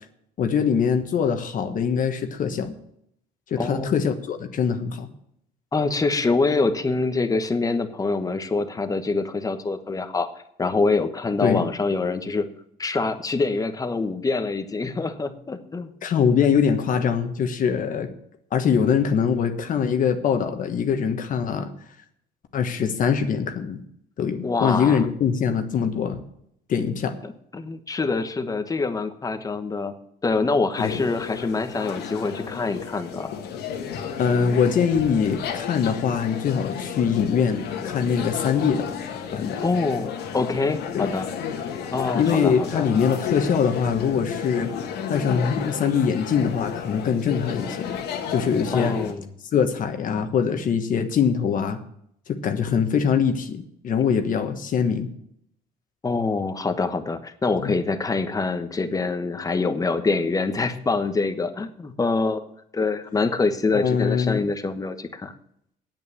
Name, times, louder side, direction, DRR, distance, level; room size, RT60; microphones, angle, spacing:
voice 1, 0.4-2.8 3.5-5.1 11.4-11.6 16.0-18.1 18.5-21.7 22.5-23.8 24.2-26.2 26.7-27.1 30.8-31.0 34.2-38.9 39.3-39.6 40.9-41.1 42.1-44.7 45.1-47.9 48.3-49.0 49.5-51.8 52.3-55.1 57.6-57.8 63.7-64.4, left 7 dB, 50° left, 7 dB, 1.4 m, -23 dB
voice 2, 3.6-3.9 5.7-10.3 10.6-12.5 12.8-15.9 24.4-25.0 27.2-29.9 30.2-33.3 39.6-41.3 41.9-42.9 48.7-49.3 56.0-62.4 62.7-65.3, left 3 dB, 20° left, 9 dB, 1.1 m, -25 dB
sound 1, 30.8-49.1, left 7 dB, 75° left, 1.7 m, -32 dB
9.0 x 8.5 x 7.3 m, 0.71 s
cardioid pair, 110°, 17 cm